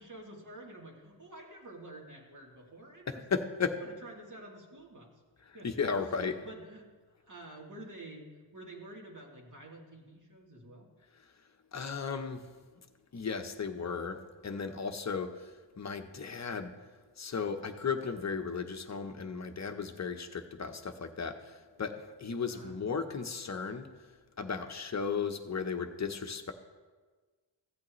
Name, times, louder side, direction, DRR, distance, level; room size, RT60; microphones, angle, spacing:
voice 1, 0.0-3.2 3.8-5.1 5.5-8.3 8.5-10.9 22.5-22.7, right 1 dB, 40° right, -2 dB, 2.6 m, -49 dB
voice 2, 3.1-3.8 5.5-6.4 11.7-12.4 13.1-16.7 17.2-24.1 24.4-26.5, left 5 dB, 35° left, 7 dB, 0.9 m, -35 dB
15.5 x 8.3 x 3.1 m, 1.4 s
cardioid pair, 70°, 45 cm